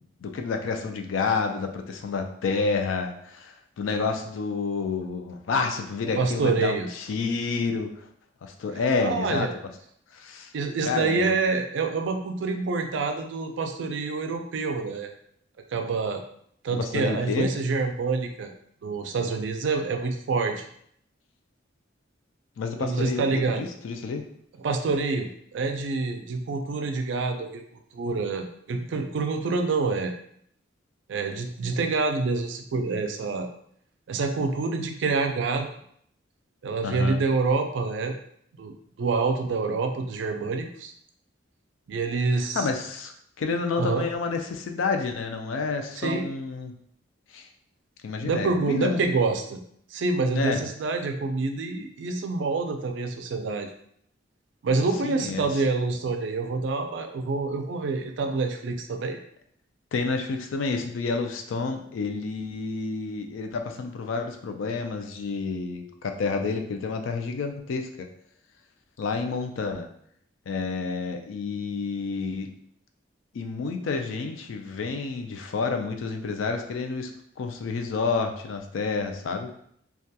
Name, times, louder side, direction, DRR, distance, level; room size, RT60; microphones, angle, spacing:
voice 1, 0.2-7.9 8.4-9.5 10.1-10.5 10.9-11.3 16.7-17.5 22.6-24.2 36.8-37.2 42.5-46.7 47.3-47.5 48.0-49.0 50.3-50.6 55.0-55.4 59.9-67.9 69.0-69.9 70.5-72.5 73.3-77.1 77.4-79.5, left 4 dB, 85° left, 5 dB, 0.4 m, -29 dB
voice 2, 6.1-6.9 9.0-9.5 10.5-15.1 15.7-16.2 16.6-18.5 18.8-20.7 22.8-23.7 24.6-27.6 27.9-30.1 31.1-33.5 34.1-35.7 36.6-38.2 38.6-40.9 41.9-42.7 43.8-44.1 46.0-46.3 48.2-49.6 49.9-53.7 54.6-59.2, right 4 dB, 70° right, 5 dB, 0.3 m, -27 dB
2.7 x 2.3 x 2.2 m, 0.67 s
head